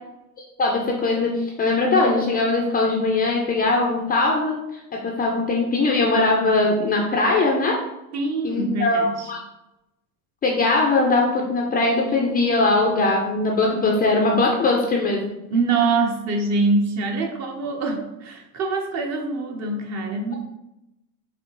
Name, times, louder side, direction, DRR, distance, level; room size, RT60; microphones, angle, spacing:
voice 1, 0.6-7.8 8.4-9.4 10.4-15.4, left 2 dB, 20° left, 0 dB, 0.5 m, -21 dB
voice 2, 8.1-9.3 15.5-20.4, right 3 dB, 35° right, 3 dB, 0.9 m, -24 dB
5.2 x 2.8 x 3.1 m, 0.91 s
supercardioid pair, 110°, 47 cm